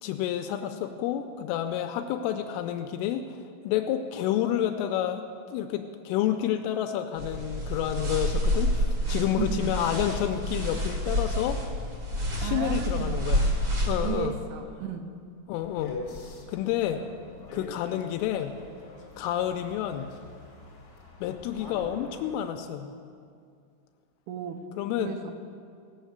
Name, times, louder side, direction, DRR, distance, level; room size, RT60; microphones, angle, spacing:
voice 1, 0.0-5.2 5.5-11.6 12.4-13.5 13.9-14.3 15.5-16.0 16.5-17.0 17.5-18.5 19.2-20.1 21.2-22.9 24.8-25.2, left 11 dB, 85° left, 6 dB, 2.9 m, -29 dB
sound 1, 7.2-14.1, equal, 60° right, 1.2 m, -28 dB
voice 2, 9.4-9.8 12.4-13.3 14.0-15.2 24.3-24.7 25.0-25.3, right 7 dB, 80° right, 5 dB, 3.0 m, -34 dB
sound 2, 15.6-22.4, left 2 dB, 60° left, 1.3 m, -44 dB
18.5 x 6.4 x 8.0 m, 2.3 s
omnidirectional pair, 6.0 m